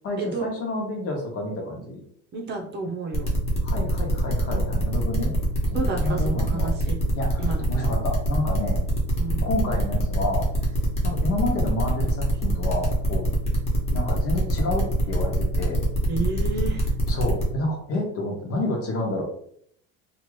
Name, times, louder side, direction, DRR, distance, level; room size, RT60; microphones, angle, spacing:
voice 1, 0.0-2.0 3.6-5.4 5.7-6.7 7.1-8.8 9.4-10.5 11.0-13.3 13.9-15.8 17.1-19.2, left 1 dB, 50° left, 1 dB, 1.0 m, -29 dB
voice 2, 2.3-3.3 5.7-7.0 7.4-7.7 9.2-9.5 16.1-16.9, right 3 dB, 35° right, 0 dB, 0.7 m, -30 dB
sound 1, 3.1-17.4, equal, 20° left, 1.1 m, -26 dB
2.8 x 2.5 x 3.2 m, 0.66 s
cardioid pair, 140°, 29 cm